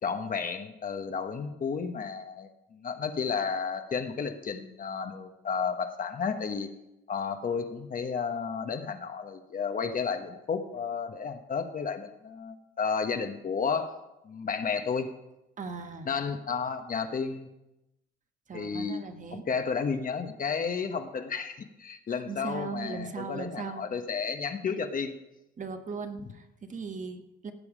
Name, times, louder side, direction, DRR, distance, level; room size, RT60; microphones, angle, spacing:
voice 1, 0.0-6.7 7.1-13.9 14.2-15.1 16.1-17.5 18.5-19.0 19.3-25.1, left 5 dB, 45° left, 7 dB, 1.1 m, -32 dB
voice 2, 15.6-16.1 18.5-19.5 22.1-23.9 25.6-27.5, right 4 dB, 40° right, 6 dB, 1.2 m, -38 dB
16.5 x 7.0 x 5.0 m, 0.92 s
cardioid pair, 90°, 20 cm